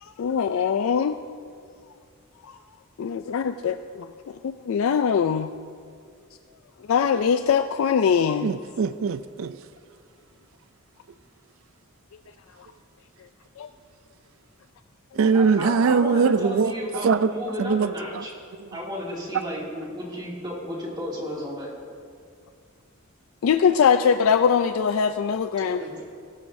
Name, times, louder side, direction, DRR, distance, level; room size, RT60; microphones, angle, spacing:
voice 1, 0.0-1.2 2.4-2.6 3.0-5.5 6.9-8.5 13.6-13.7 23.4-25.8, left 7 dB, 75° left, 9 dB, 0.3 m, -22 dB
voice 2, 8.4-9.6 15.2-16.7 17.0-17.3 17.6-17.9, right 5 dB, 70° right, 13 dB, 0.4 m, -21 dB
voice 3, 15.2-18.3 18.7-21.7 25.6-26.0, left 1 dB, 20° right, -4 dB, 2.5 m, -33 dB
16.5 x 12.5 x 2.7 m, 2.2 s
head